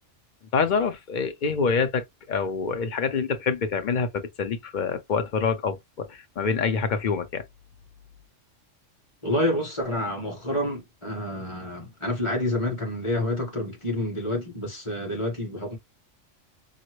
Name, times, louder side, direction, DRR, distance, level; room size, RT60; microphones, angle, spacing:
voice 1, 0.5-7.4, left 5 dB, 50° left, 0.6 m, -26 dB
voice 2, 9.2-15.8, left 1 dB, 25° left, 1.4 m, -28 dB
4.0 x 2.0 x 3.0 m
omnidirectional pair, 1.3 m